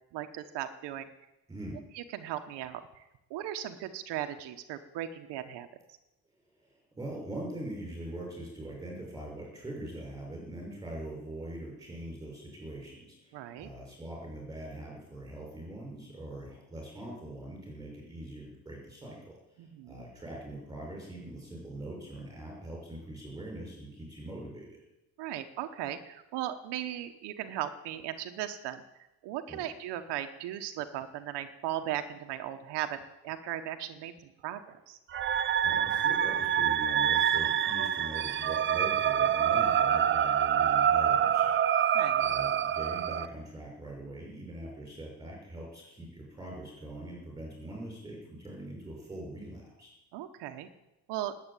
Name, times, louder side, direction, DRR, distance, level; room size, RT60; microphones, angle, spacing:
voice 1, 0.1-1.1 1.9-5.7 13.3-13.7 19.6-20.0 25.2-28.8 29.2-35.0 41.9-42.3 50.1-50.7 51.1-51.3, right 12 dB, 80° right, 7 dB, 1.2 m, -37 dB
voice 2, 1.5-1.8 7.0-19.4 19.9-24.7 29.5-29.6 35.6-49.9, right 1 dB, 10° right, -2 dB, 6.3 m, -42 dB
sound 1, 35.1-43.3, right 9 dB, 30° right, 0.5 m, -26 dB
19.5 x 8.1 x 9.1 m, 0.94 s
cardioid pair, 175°, 40 cm